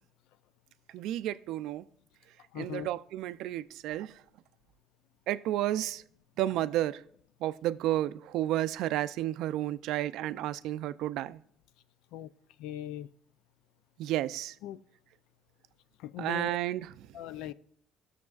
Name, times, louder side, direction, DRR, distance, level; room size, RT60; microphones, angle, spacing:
voice 1, 0.9-1.9 2.5-4.2 5.3-6.0 6.4-7.0 7.4-11.4 14.0-14.6 16.2-17.1, right 14 dB, 70° right, 0.3 m, -32 dB
voice 2, 2.5-2.9 12.1-12.3 12.6-13.1 14.6-14.8 16.0-16.6 17.1-17.5, left 12 dB, 80° left, 0.4 m, -39 dB
18.0 x 6.6 x 2.4 m
cardioid pair, 140°, 0 cm